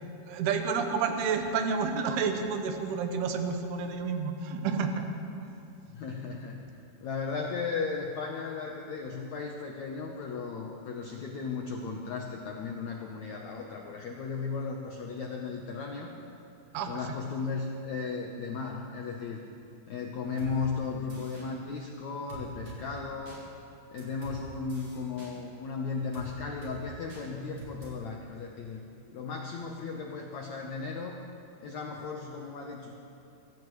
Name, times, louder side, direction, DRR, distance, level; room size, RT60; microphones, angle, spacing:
voice 1, 0.3-5.1 5.4-5.5 16.7-17.0, right 5 dB, 80° right, 5 dB, 3.1 m, -30 dB
voice 2, 5.9-6.6 7.0-16.1 16.9-19.4 19.9-23.5 23.9-28.8 29.1-31.2 31.6-32.9, left 4 dB, 70° left, 0 dB, 1.7 m, -36 dB
sound 1, 20.4-20.5 21.1-21.5 22.3-22.8 23.3-23.4 24.0-24.4 24.7-25.3 26.1-26.3 26.6-26.8 27.1-27.2 27.6-27.9, right 3 dB, 35° right, 4.8 m, -44 dB
24.0 x 16.5 x 3.2 m, 2.7 s
omnidirectional pair, 4.6 m